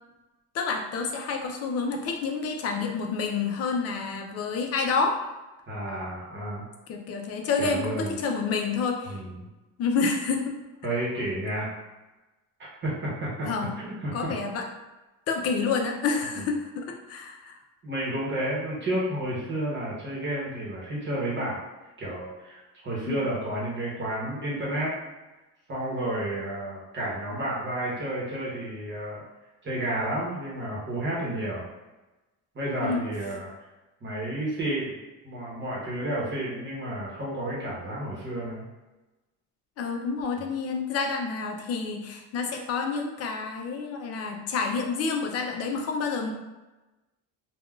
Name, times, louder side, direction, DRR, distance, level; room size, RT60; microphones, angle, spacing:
voice 1, 0.5-5.2 6.9-9.2 9.8-10.5 13.4-13.7 14.1-14.6 15.3-17.6 23.1-23.2 32.8-33.0 39.8-46.3, left 4 dB, 45° left, 3 dB, 0.5 m, -28 dB
voice 2, 5.7-6.6 7.6-8.2 9.0-9.5 10.8-11.7 12.6-13.5 13.8-14.3 16.3-16.5 17.8-21.6 22.0-24.9 25.7-29.2 29.6-31.7 32.5-33.5 34.0-35.0 35.2-38.6 40.4-40.5, right 1 dB, 35° right, -6 dB, 1.0 m, -31 dB
3.4 x 2.3 x 2.3 m, 1.1 s
cardioid pair, 135°, 35 cm